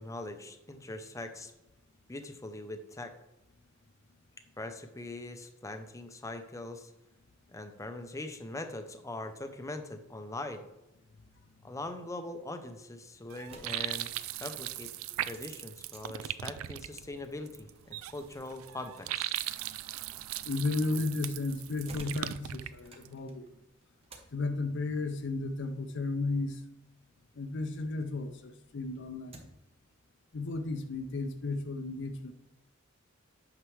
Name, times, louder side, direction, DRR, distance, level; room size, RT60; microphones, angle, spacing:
voice 1, 0.0-1.5 2.1-3.1 4.6-6.9 7.5-10.6 11.6-14.1 14.4-14.9 15.2-19.3, left 2 dB, 15° left, 7 dB, 0.6 m, -42 dB
sound 1, 13.3-23.1, right 12 dB, 85° right, 0.3 m, -39 dB
sound 2, 13.4-28.0 28.4-29.8, right 2 dB, 30° right, 1.0 m, -58 dB
voice 2, 20.4-23.5 24.3-26.6 27.4-29.4 30.3-32.3, left 3 dB, 60° left, 7 dB, 0.5 m, -34 dB
9.1 x 5.9 x 3.2 m, 0.92 s
head